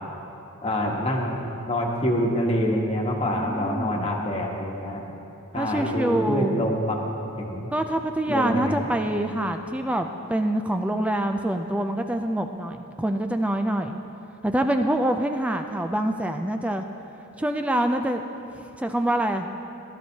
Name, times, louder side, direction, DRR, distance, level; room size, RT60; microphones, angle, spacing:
voice 1, 0.6-1.4 1.7-5.0 5.5-7.7 8.3-8.9, equal, 25° left, 0 dB, 1.2 m, -26 dB
voice 2, 3.2-4.1 5.5-6.6 7.7-14.0 14.4-16.8 17.4-18.2 18.5-19.5, right 1 dB, 5° right, 5 dB, 0.3 m, -25 dB
17.5 x 12.0 x 2.8 m, 2.8 s
head